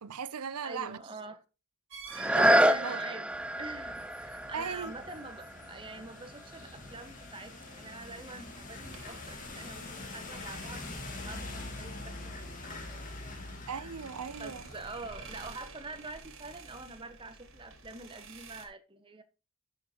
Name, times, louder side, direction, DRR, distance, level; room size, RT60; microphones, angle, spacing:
voice 1, 0.0-1.0 2.2-3.0 4.5-4.9 13.7-14.6, right 6 dB, 85° right, 0.6 m, -38 dB
voice 2, 0.6-1.4 2.6-3.3 3.6-13.2 13.7-13.9 14.4-19.2, right 2 dB, 20° right, 1.3 m, -45 dB
sound 1, 1.9-2.8 7.4-11.2 13.9-18.7, right 4 dB, 60° right, 2.6 m, -51 dB
sound 2, 2.1-7.7 8.3-8.4, right 1 dB, 5° right, 0.5 m, -29 dB
sound 3, 3.3-15.5, left 2 dB, 35° left, 2.5 m, -45 dB
12.0 x 6.6 x 2.9 m
head